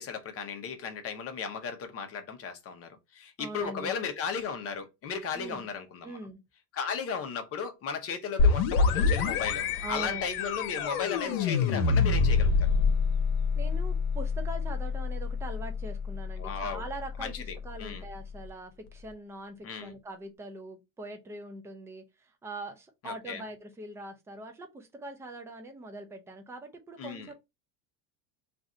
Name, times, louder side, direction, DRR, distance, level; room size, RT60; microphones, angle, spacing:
voice 1, 0.0-6.2 6.7-12.7 16.4-16.8 17.2-18.0 19.6-19.9 23.0-23.4 27.0-27.3, left 6 dB, 30° left, 0.8 m, -36 dB
voice 2, 3.4-3.9 5.3-5.7 6.0-6.4 9.8-10.4 11.0-11.2 13.6-27.3, right 2 dB, 5° right, 0.3 m, -42 dB
sound 1, 8.4-17.9, left 4 dB, 75° left, 0.9 m, -27 dB
2.5 x 2.5 x 4.1 m
cardioid pair, 145°, 46 cm